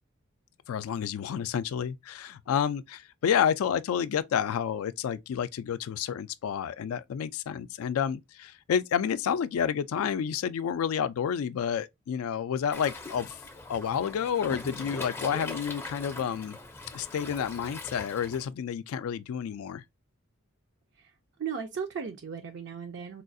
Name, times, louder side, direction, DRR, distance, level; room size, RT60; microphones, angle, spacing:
voice 1, 0.7-13.4 13.7-16.6 16.9-19.8, left 8 dB, 85° left, 0.3 m, -30 dB
Waves surf, 12.7-18.5, left 2 dB, 10° left, 0.4 m, -41 dB
voice 2, 21.4-23.2, right 6 dB, 55° right, 0.4 m, -36 dB
4.2 x 2.3 x 2.5 m
head